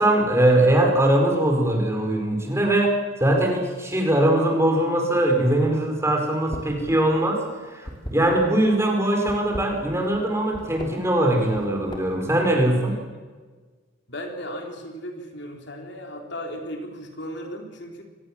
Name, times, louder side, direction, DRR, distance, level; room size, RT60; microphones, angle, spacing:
voice 1, 0.0-2.9 3.2-13.0, right 1 dB, 15° right, 2 dB, 4.5 m, -21 dB
sound 1, 6.4-6.8 7.1-8.7 9.2-10.2 10.5-10.9 11.4-12.3, equal, 25° left, 3.2 m, -37 dB
voice 2, 14.1-18.0, equal, 55° left, 3 dB, 3.6 m, -36 dB
25.0 x 19.5 x 7.3 m, 1.4 s
head